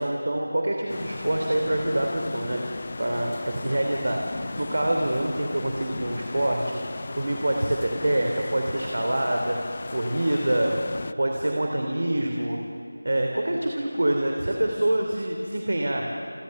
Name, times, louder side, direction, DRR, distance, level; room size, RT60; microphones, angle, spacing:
voice 1, 0.0-6.8 7.1-9.6 9.9-10.8 11.2-12.6 13.0-16.1, right 1 dB, 60° right, 2 dB, 3.2 m, -26 dB
sound 1, 0.9-11.1, left 3 dB, 35° left, 0.6 m, -36 dB
29.0 x 29.0 x 6.7 m, 2.5 s
figure-of-eight pair, 170°, 0 cm